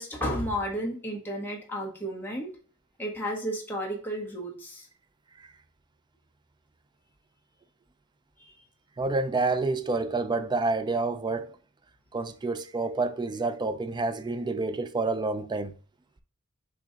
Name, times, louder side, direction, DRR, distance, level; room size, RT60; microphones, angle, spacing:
voice 1, 0.0-2.5 3.0-4.9 8.4-8.6, equal, 10° left, 1.2 m, -32 dB
voice 2, 9.0-11.6 12.1-15.7, right 3 dB, 20° right, 0.3 m, -28 dB
6.0 x 3.1 x 2.8 m
head